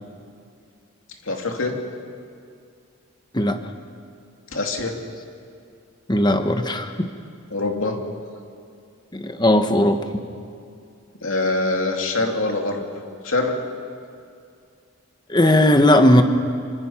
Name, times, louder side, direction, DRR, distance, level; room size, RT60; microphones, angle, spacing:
voice 1, 1.3-1.8 4.5-5.0 7.5-8.0 11.2-12.9 13.2-13.6, left 2 dB, 70° left, 2 dB, 2.7 m, -24 dB
voice 2, 6.1-7.1 9.1-10.2 15.3-16.2, left 1 dB, 20° left, 7 dB, 1.2 m, -17 dB
26.0 x 25.0 x 5.8 m, 2.3 s
head